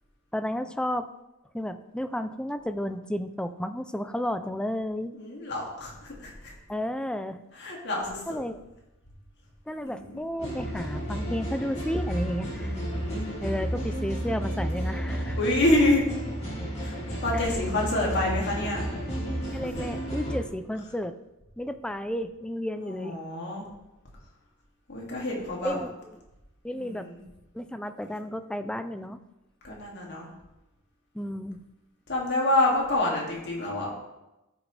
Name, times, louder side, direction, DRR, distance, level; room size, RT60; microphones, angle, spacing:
voice 1, 0.3-1.1 1.5-5.1 6.7-7.4 8.3-8.6 9.7-12.8 13.4-15.4 17.3-17.6 19.3-21.1 21.6-23.2 25.6-26.2 26.6-27.1 27.5-29.2 31.1-31.6, equal, 5° left, 10 dB, 0.4 m, -32 dB
voice 2, 5.1-6.5 7.6-8.2 9.8-10.2 12.5-13.4 15.4-16.0 16.8-17.0 17.2-18.9 22.8-23.6 24.9-25.8 26.7-27.2 29.6-30.3 32.1-33.9, left 1 dB, 55° left, -2 dB, 2.3 m, -27 dB
sound 1, 10.4-20.4, equal, 30° left, 2.6 m, -32 dB
14.0 x 6.0 x 3.3 m, 0.97 s
head